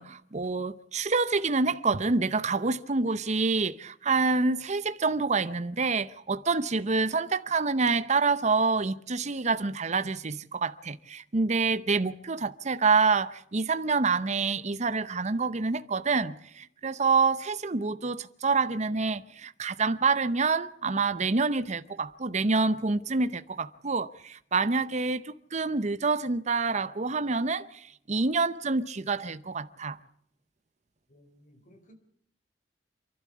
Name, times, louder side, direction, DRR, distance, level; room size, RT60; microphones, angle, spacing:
voice 1, 0.0-30.0, right 4 dB, 40° right, 0.8 m, -27 dB
voice 2, 31.1-31.9, equal, 45° left, 4.2 m, -58 dB
28.0 x 12.0 x 8.5 m
head